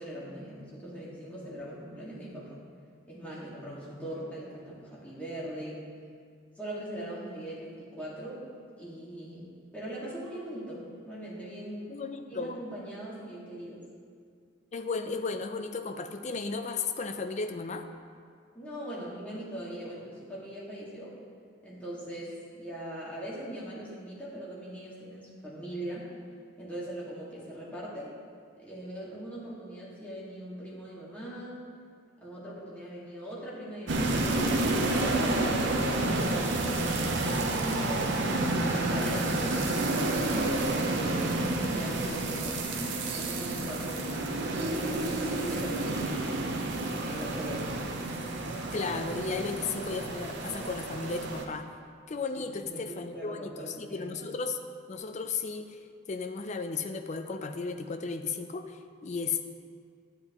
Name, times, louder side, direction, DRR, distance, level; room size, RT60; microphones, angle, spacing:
voice 1, 0.0-2.6 3.1-5.8 6.6-8.4 8.8-11.9 12.3-13.8 18.5-21.2 21.6-26.1 26.6-28.1 28.6-31.6 32.2-38.2 38.7-42.7 43.1-46.4 47.0-47.8 52.3-54.2, right 1 dB, 5° left, -8 dB, 1.8 m, -40 dB
voice 2, 11.9-12.6 14.7-17.9 48.7-51.7 52.1-54.6 54.9-55.8 56.1-59.4, left 4 dB, 35° left, 7 dB, 0.4 m, -34 dB
sound 1, 33.9-51.5, right 2 dB, 60° right, 0.7 m, -30 dB
10.5 x 7.6 x 3.0 m, 2.1 s
head